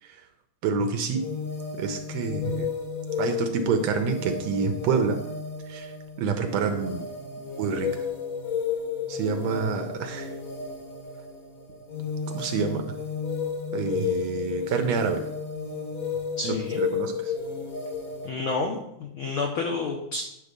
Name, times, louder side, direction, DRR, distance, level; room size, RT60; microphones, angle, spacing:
voice 1, 0.6-1.2 1.8-2.7 3.2-5.2 5.7-7.1 7.6-7.9 9.1-10.3 12.3-12.8 13.7-15.3 16.4-17.3, right 5 dB, 75° right, 6 dB, 1.7 m, -27 dB
sound 1, 1.1-18.3, left 6 dB, 50° left, 1.0 m, -32 dB
voice 2, 16.4-16.8 18.2-20.2, left 3 dB, 70° left, 1 dB, 1.2 m, -30 dB
9.7 x 4.0 x 6.6 m, 0.83 s
omnidirectional pair, 3.5 m